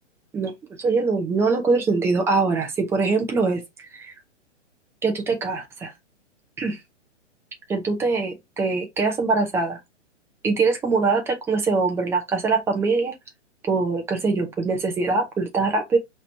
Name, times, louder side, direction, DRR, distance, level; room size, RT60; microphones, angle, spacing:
voice 1, 0.8-3.6 3.9-4.1 5.0-5.9 6.6-6.8 7.7-9.8 10.4-13.1 13.7-16.0, right 4 dB, 5° right, 0.7 m, -23 dB
5.0 x 3.1 x 2.6 m
figure-of-eight pair, 120°, 37 cm